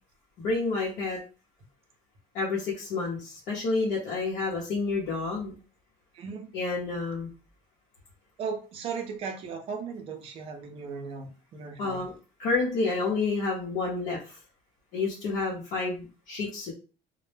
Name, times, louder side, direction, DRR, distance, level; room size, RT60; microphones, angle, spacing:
voice 1, 0.4-1.2 2.3-5.5 6.5-7.3 11.8-12.1 12.4-14.4 14.9-16.7, left 3 dB, 60° left, -6 dB, 0.7 m, -29 dB
voice 2, 8.4-12.0, right 5 dB, 40° right, 5 dB, 0.5 m, -36 dB
2.1 x 2.0 x 3.1 m, 0.35 s
cardioid pair, 175°, 15 cm